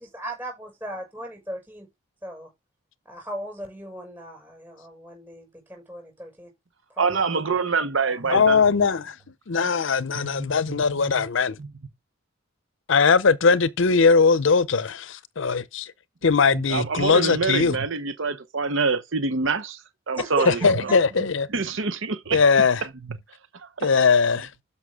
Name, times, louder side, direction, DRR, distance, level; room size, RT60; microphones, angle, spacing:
voice 1, 0.0-1.9 2.2-2.5 3.0-6.5 6.9-7.1 8.0-8.2 20.1-21.0, equal, 10° right, 6.3 m, -37 dB
voice 2, 7.0-8.6 10.2-11.2 11.6-11.7 16.5-19.8 20.1-22.4 23.5-23.9, right 4 dB, 65° right, 0.9 m, -26 dB
voice 3, 8.3-9.1 9.5-11.6 12.9-15.9 16.2-17.8 20.5-21.5 22.3-22.8 23.8-24.5, left 5 dB, 60° left, 0.6 m, -20 dB
12.5 x 5.6 x 3.6 m
head